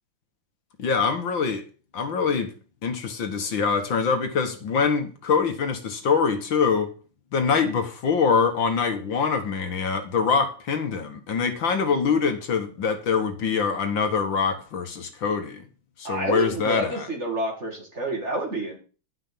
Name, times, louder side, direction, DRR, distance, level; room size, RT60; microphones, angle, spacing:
voice 1, 0.8-1.6 1.9-2.5 2.8-6.9 7.3-15.6 16.0-17.1, left 5 dB, 65° left, 2.0 m, -24 dB
voice 2, 16.0-18.8, right 1 dB, 30° right, 2.6 m, -28 dB
10.5 x 6.1 x 6.9 m
omnidirectional pair, 2.4 m